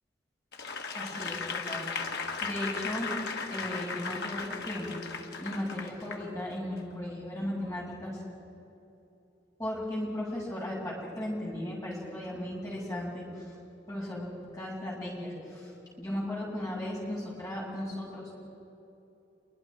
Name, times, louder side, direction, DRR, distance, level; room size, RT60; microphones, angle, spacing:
Applause / Crowd, 0.5-6.3 6.8-6.9, left 4 dB, 60° left, 1.6 m, -36 dB
voice 1, 0.9-2.1 2.4-3.1 3.5-8.2 9.6-13.6 13.9-15.7 16.0-18.3, left 1 dB, 20° left, -5 dB, 7.3 m, -36 dB
28.0 x 23.5 x 5.0 m, 2.9 s
head